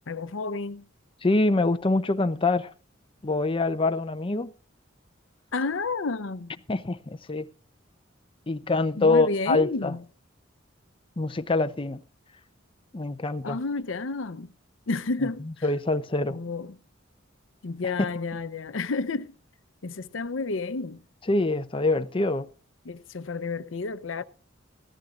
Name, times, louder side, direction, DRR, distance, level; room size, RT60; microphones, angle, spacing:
voice 1, 0.1-0.9 5.5-6.6 9.0-10.0 13.4-14.5 14.9-15.7 16.3-16.8 17.6-19.3 19.8-21.0 22.8-24.2, left 3 dB, 80° left, 0.7 m, -31 dB
voice 2, 1.2-2.7 3.2-4.5 6.7-7.5 8.5-9.9 11.2-12.0 12.9-13.6 15.6-16.4 21.3-22.5, left 2 dB, 25° left, 0.7 m, -25 dB
17.0 x 13.5 x 2.5 m
head